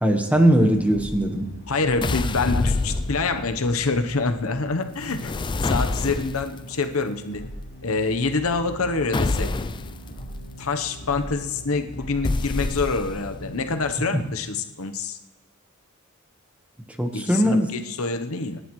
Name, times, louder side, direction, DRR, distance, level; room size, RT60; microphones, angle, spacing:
voice 1, 0.0-1.5 14.1-14.2 17.0-17.7, right 1 dB, 5° right, 4 dB, 1.3 m, -20 dB
sound 1, 0.5-14.2, equal, 50° left, 4.4 m, -40 dB
voice 2, 1.7-5.3 5.6-7.5 7.8-9.5 10.6-15.2 17.1-18.6, left 3 dB, 85° left, 8 dB, 1.0 m, -26 dB
sound 2, 2.0-3.6 5.0-6.6 9.1-10.0 12.2-13.4, left 3 dB, 20° left, 0.4 m, -26 dB
25.5 x 11.0 x 3.2 m, 1.0 s
head